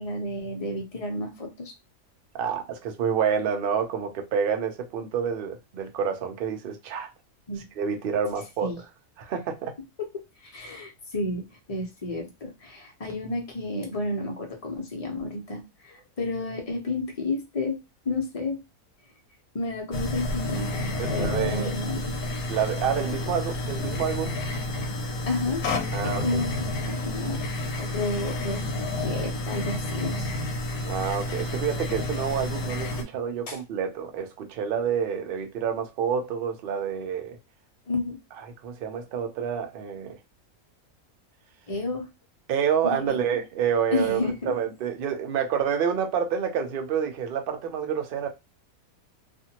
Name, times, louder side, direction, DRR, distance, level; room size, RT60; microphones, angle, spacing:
voice 1, 0.0-1.7 7.5-7.6 8.6-8.8 10.4-17.8 18.0-18.6 19.5-22.1 25.3-27.4 27.9-28.6 29.0-30.4 33.5-33.6 37.9-38.2 41.7-42.1 42.8-43.2 43.9-44.5, left 2 dB, 30° left, 0.7 m, -31 dB
voice 2, 2.4-7.1 7.8-8.7 9.2-9.7 21.0-21.7 22.5-24.4 25.9-26.4 30.8-37.4 38.4-40.2 42.5-44.2 44.5-48.3, right 7 dB, 55° right, 0.6 m, -28 dB
sound 1, 19.9-33.0, left 1 dB, 85° left, 1.1 m, -30 dB
2.6 x 2.5 x 2.8 m
omnidirectional pair, 1.5 m